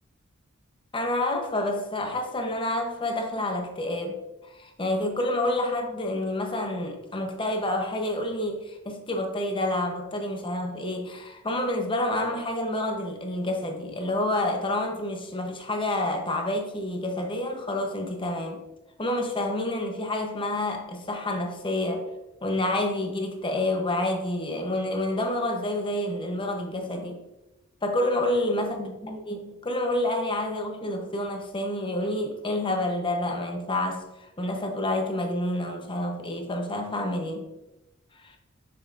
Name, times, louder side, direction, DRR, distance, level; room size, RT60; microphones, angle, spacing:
voice 1, 0.9-4.2 4.5-18.6 19.0-22.1 22.4-27.2 27.8-34.0 34.4-37.5 38.2-38.4, left 1 dB, 25° left, 0.8 m, -28 dB
6.6 x 6.4 x 2.5 m
head